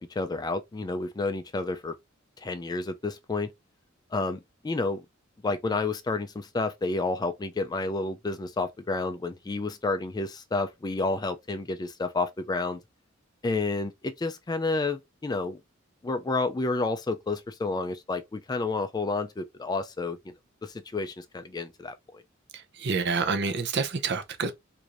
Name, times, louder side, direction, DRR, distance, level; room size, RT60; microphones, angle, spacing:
voice 1, 0.0-1.9 2.4-3.5 4.1-5.0 5.4-12.8 13.4-15.6 16.0-20.3 20.6-21.9, left 3 dB, 20° left, 0.3 m, -30 dB
voice 2, 22.5-24.5, right 4 dB, 60° right, 0.6 m, -28 dB
4.6 x 2.6 x 2.5 m
head